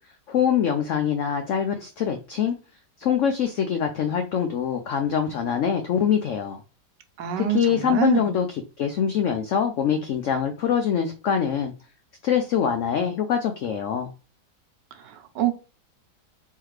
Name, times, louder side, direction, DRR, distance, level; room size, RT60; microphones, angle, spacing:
voice 1, 0.3-2.6 3.0-6.6 7.4-11.7 12.2-14.1, left 8 dB, 80° left, 0.6 m, -24 dB
voice 2, 7.2-8.3 15.0-15.5, right 10 dB, 85° right, 1.4 m, -25 dB
3.7 x 3.3 x 3.1 m
omnidirectional pair, 1.8 m